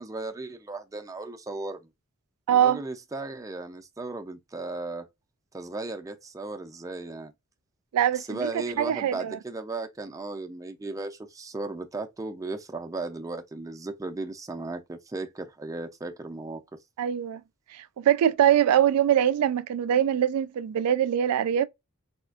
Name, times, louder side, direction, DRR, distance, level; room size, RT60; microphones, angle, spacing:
voice 1, 0.0-1.9 2.5-5.1 5.5-7.3 8.2-16.6, right 3 dB, 15° right, 0.4 m, -36 dB
voice 2, 2.5-2.8 7.9-8.5 8.8-9.4 17.0-17.4 17.7-21.7, right 10 dB, 80° right, 0.3 m, -23 dB
4.2 x 2.3 x 2.4 m
head